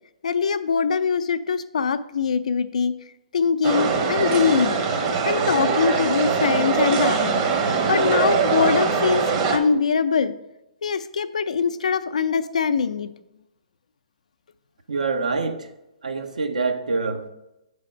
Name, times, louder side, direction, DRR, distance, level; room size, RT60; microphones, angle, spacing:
voice 1, 0.2-2.9 3.3-4.8 5.2-7.4 7.9-9.2 9.5-10.3 10.8-13.1, left 6 dB, 75° left, 0.4 m, -22 dB
sound 1, 3.6-9.6, right 5 dB, 35° right, 0.8 m, -22 dB
voice 2, 14.9-15.7 16.0-17.3, right 4 dB, 80° right, 0.7 m, -25 dB
7.5 x 3.4 x 5.0 m
hypercardioid pair, 130°, 4 cm